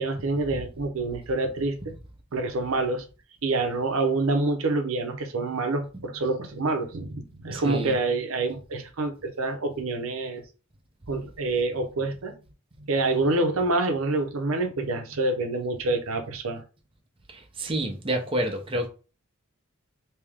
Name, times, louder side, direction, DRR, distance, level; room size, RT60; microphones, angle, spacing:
voice 1, 0.0-1.8 2.3-3.1 3.4-10.4 11.1-12.3 12.8-16.6, right 2 dB, 80° right, 0.7 m, -27 dB
voice 2, 7.5-7.9 17.6-18.9, right 1 dB, 25° right, 0.7 m, -28 dB
3.3 x 2.9 x 3.5 m
head